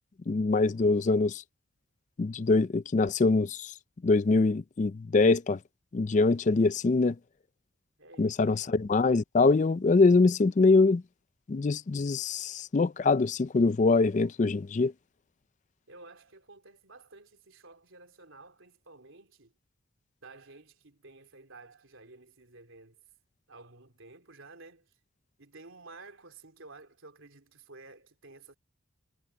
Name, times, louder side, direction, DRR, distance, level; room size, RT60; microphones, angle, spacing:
voice 1, 0.3-1.4 2.2-3.7 4.0-5.6 5.9-7.2 8.2-11.0 11.5-14.9, left 3 dB, 35° left, 0.4 m, -24 dB
voice 2, 8.0-8.5 15.9-19.5 20.2-23.0 23.5-24.9 25.4-28.5, right 3 dB, 70° right, 3.2 m, -52 dB
head